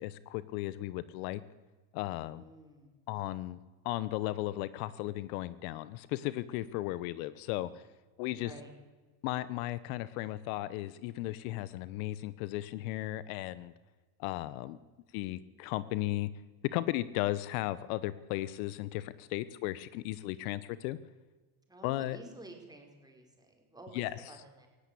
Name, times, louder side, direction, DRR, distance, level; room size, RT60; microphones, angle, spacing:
voice 1, 0.0-1.4 1.9-2.4 3.1-3.6 3.8-7.8 8.2-8.5 9.2-13.7 14.2-14.8 15.1-16.3 16.7-21.0 21.8-22.2 23.9-24.2, left 16 dB, 70° left, 17 dB, 1.0 m, -35 dB
voice 2, 2.3-3.0 8.3-8.7 21.7-24.0 24.3-24.7, right 2 dB, 10° right, 2 dB, 4.8 m, -51 dB
18.5 x 16.5 x 8.4 m, 1.3 s
supercardioid pair, 125°, 45 cm